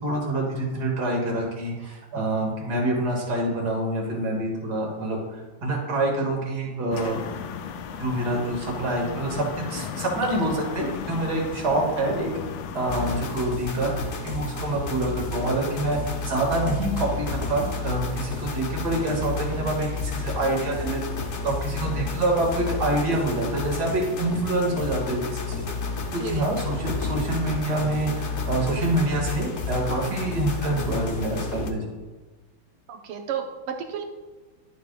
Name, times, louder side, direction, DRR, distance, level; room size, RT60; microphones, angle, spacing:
voice 1, 0.0-7.2 8.0-12.3 12.7-13.9 14.2-25.7 26.1-31.9, right 2 dB, 50° right, -1 dB, 2.4 m, -26 dB
sound 1, 6.9-13.4, left 7 dB, 90° left, 1.6 m, -35 dB
sound 2, 12.9-31.7, left 4 dB, 70° left, 0.6 m, -31 dB
voice 2, 32.9-34.0, right 7 dB, 90° right, 4 dB, 1.9 m, -33 dB
11.5 x 7.4 x 2.4 m, 1.3 s
omnidirectional pair, 2.4 m